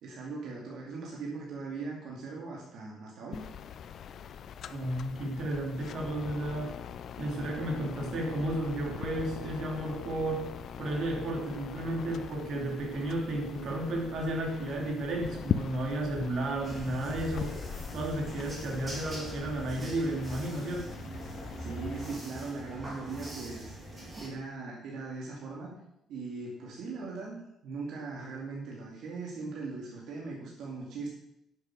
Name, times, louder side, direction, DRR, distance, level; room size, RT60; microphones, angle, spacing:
voice 1, 0.0-3.4 21.6-25.7 26.1-27.4 27.6-31.1, right 4 dB, 70° right, -2 dB, 2.5 m, -40 dB
sound 1, 3.3-22.2, left 8 dB, 50° left, 0.6 m, -41 dB
voice 2, 4.7-6.7 7.2-10.5 10.8-17.6 17.9-20.9, right 1 dB, 55° right, 1 dB, 3.1 m, -33 dB
sound 2, 16.6-24.3, right 1 dB, 20° right, 3.7 m, -42 dB
11.0 x 7.4 x 6.4 m, 0.81 s
cardioid pair, 145°, 0 cm